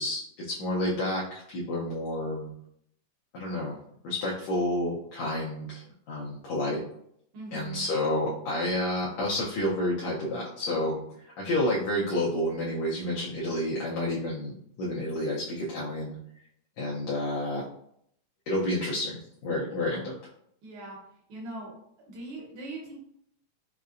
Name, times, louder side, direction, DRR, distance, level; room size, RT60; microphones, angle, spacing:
voice 1, 0.0-2.5 3.3-3.8 4.0-6.8 7.5-11.0 11.2-16.2 16.8-17.6 18.5-20.1, left 1 dB, 75° left, -5 dB, 1.7 m, -30 dB
voice 2, 7.3-7.9 20.6-21.0 21.3-21.8 22.1-23.0, right 2 dB, 70° right, -3 dB, 2.3 m, -40 dB
5.4 x 2.1 x 2.5 m, 0.71 s
omnidirectional pair, 3.7 m